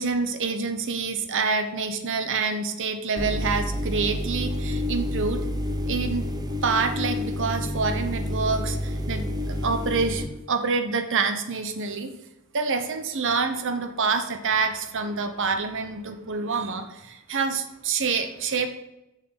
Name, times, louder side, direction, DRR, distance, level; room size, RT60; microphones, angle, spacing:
voice 1, 0.0-5.4 5.9-6.3 6.6-12.1 12.5-18.7, right 4 dB, 60° right, 8 dB, 1.0 m, -27 dB
sound 1, 3.2-10.3, left 1 dB, 20° right, 0.9 m, -29 dB
7.4 x 6.5 x 5.8 m, 0.90 s
head